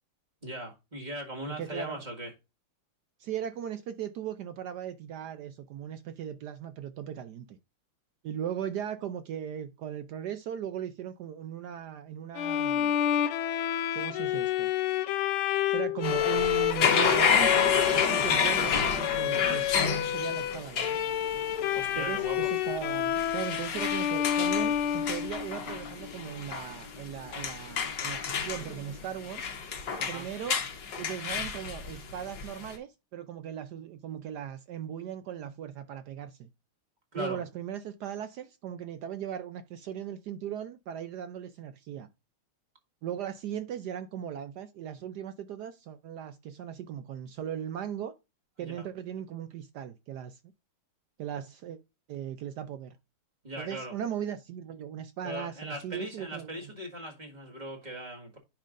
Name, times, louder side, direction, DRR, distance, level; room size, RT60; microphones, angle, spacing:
voice 1, 0.4-2.3 18.1-18.5 21.7-22.5 30.0-30.3 37.1-37.4 48.6-48.8 53.4-53.9 55.2-58.4, equal, 20° right, 1.8 m, -39 dB
voice 2, 1.5-2.0 3.2-7.6 8.2-13.0 13.9-14.7 15.7-20.9 22.0-29.5 30.1-30.6 31.0-36.5 37.1-42.1 43.0-48.1 48.6-50.4 51.2-51.8 52.1-53.0 53.6-56.5, right 9 dB, 75° right, 0.9 m, -38 dB
Bowed string instrument, 12.4-25.8, left 11 dB, 80° left, 1.5 m, -29 dB
sound 1, 16.0-32.7, left 6 dB, 60° left, 1.6 m, -30 dB
10.0 x 5.8 x 2.5 m
omnidirectional pair, 2.3 m